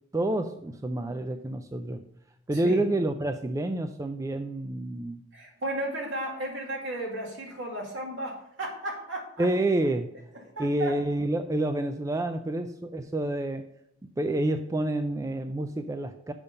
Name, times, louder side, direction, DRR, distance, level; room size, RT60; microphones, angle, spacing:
voice 1, 0.1-2.0 2.5-5.2 9.4-10.1 10.6-13.6 14.2-16.3, right 1 dB, 15° right, 8 dB, 0.3 m, -28 dB
voice 2, 2.5-2.8 5.3-9.5 10.3-10.9, right 1 dB, 70° right, -1 dB, 2.2 m, -34 dB
7.0 x 5.4 x 5.2 m, 0.76 s
head